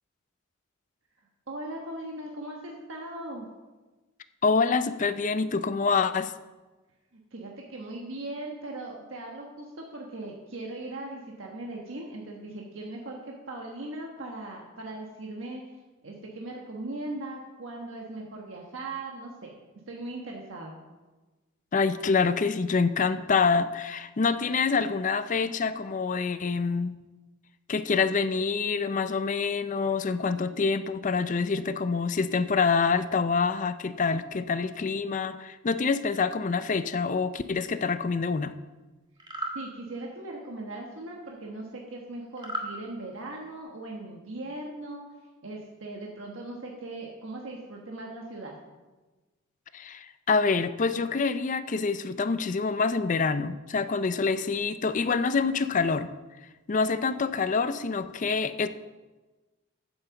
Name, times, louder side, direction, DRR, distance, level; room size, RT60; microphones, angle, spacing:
voice 1, 1.5-3.5 7.1-15.6 16.0-19.5 19.9-20.7 39.5-45.1 45.4-48.6, right 2 dB, 70° right, -1 dB, 1.4 m, -39 dB
voice 2, 4.4-6.3 21.7-27.0 27.7-38.6 49.7-56.1 56.7-58.7, left 4 dB, 40° left, 12 dB, 0.4 m, -26 dB
sound 1, 39.2-39.6 42.4-42.7, right 1 dB, 20° right, 1.5 m, -33 dB
9.0 x 7.8 x 7.0 m, 1.2 s
head